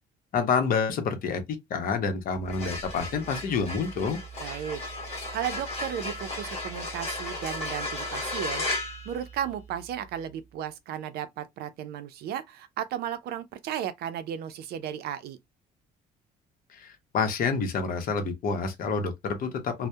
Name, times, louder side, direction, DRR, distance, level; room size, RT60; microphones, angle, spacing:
voice 1, 0.3-4.2 16.7-19.9, left 5 dB, 55° left, 0.7 m, -28 dB
sound 1, 2.4-9.8, left 2 dB, 40° left, 1.0 m, -35 dB
voice 2, 4.4-4.8 5.3-8.6 9.0-15.4, right 10 dB, 70° right, 0.5 m, -34 dB
2.7 x 2.0 x 2.2 m
cardioid pair, 110°, 17 cm